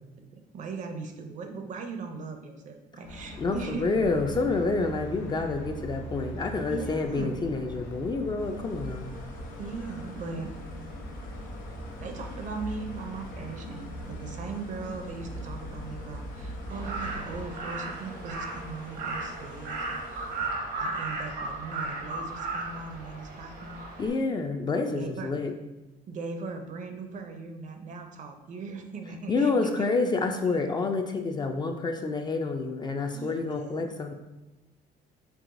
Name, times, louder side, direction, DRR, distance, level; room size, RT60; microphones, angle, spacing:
voice 1, 0.2-3.9 6.7-7.3 9.6-10.5 12.0-23.8 25.0-25.3 26.1-29.9 30.4-30.6 33.1-33.9, right 4 dB, 50° right, 6 dB, 0.5 m, -39 dB
sound 1, 3.0-17.5, equal, 90° left, 0.9 m, -41 dB
voice 2, 3.4-9.1 24.0-25.5 29.3-34.1, left 3 dB, 25° left, 5 dB, 0.3 m, -28 dB
sound 2, 8.4-20.5, equal, 55° left, 0.9 m, -47 dB
Crow, 16.7-24.1, right 3 dB, 80° right, 0.9 m, -35 dB
4.6 x 3.3 x 2.5 m, 1.0 s
cardioid pair, 110°, 17 cm